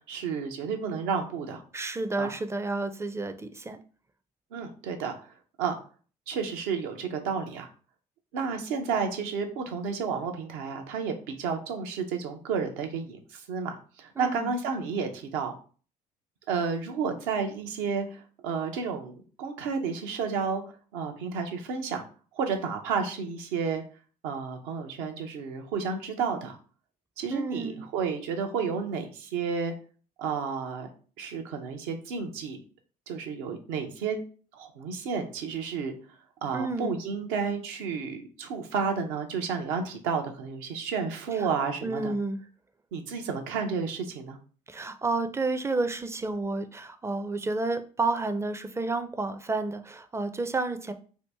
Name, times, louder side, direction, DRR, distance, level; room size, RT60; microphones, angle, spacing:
voice 1, 0.1-1.6 2.2-2.3 4.5-5.1 5.6-5.8 6.3-7.7 8.3-15.5 16.5-20.6 20.9-22.0 22.3-23.8 24.2-26.6 27.2-29.7 30.2-30.9 31.2-32.6 33.1-34.2 34.5-35.9 36.4-42.1 42.9-44.4, right 5 dB, 70° right, 4 dB, 0.6 m, -31 dB
voice 2, 1.7-3.8 14.2-14.5 27.3-27.9 36.5-37.0 41.3-41.5 41.8-42.4 44.7-50.9, right 3 dB, 15° right, 9 dB, 0.4 m, -30 dB
2.8 x 2.6 x 3.4 m, 0.40 s
hypercardioid pair, 50°, 20 cm